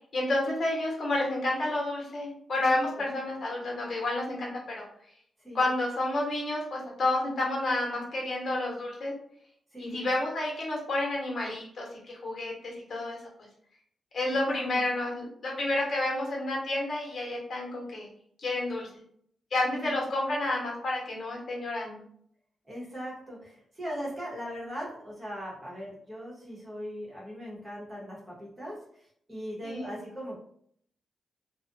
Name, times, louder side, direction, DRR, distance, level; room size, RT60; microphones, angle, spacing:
voice 1, 0.1-4.8 5.5-9.1 9.8-13.2 14.1-18.1 18.4-18.9 19.5-22.0 29.6-29.9, left 2 dB, 50° left, -2 dB, 1.0 m, -30 dB
voice 2, 14.5-14.9 19.8-20.1 22.7-30.4, equal, 20° right, -5 dB, 1.0 m, -39 dB
2.4 x 2.1 x 2.5 m, 0.65 s
wide cardioid pair, 140°, 0 cm